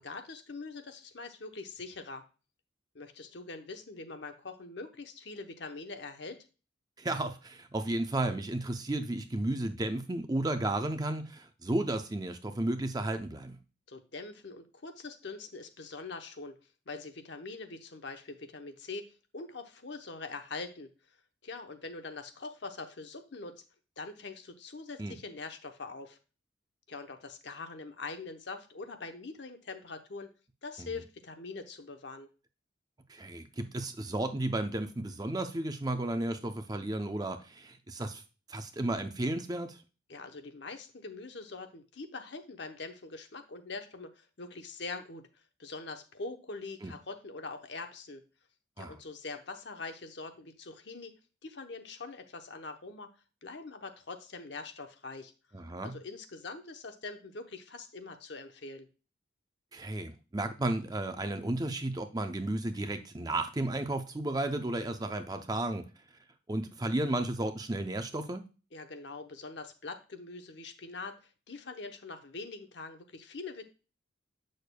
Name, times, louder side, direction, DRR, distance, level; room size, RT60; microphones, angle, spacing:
voice 1, 0.0-2.2 2.9-6.4 13.9-16.6 16.9-20.9 21.4-23.6 24.0-26.2 26.9-30.3 30.6-32.3 40.1-45.3 45.6-48.2 48.8-51.1 51.4-53.1 53.4-55.3 55.8-58.9 68.7-73.6, left 3 dB, 60° left, 7 dB, 0.9 m, -43 dB
voice 2, 7.0-13.6 25.0-25.2 30.8-30.9 33.1-38.2 38.5-39.8 46.8-46.9 48.8-49.0 55.5-56.0 59.7-65.8 66.5-68.5, right 1 dB, 20° right, 8 dB, 0.5 m, -33 dB
8.4 x 6.4 x 2.2 m, 0.33 s
head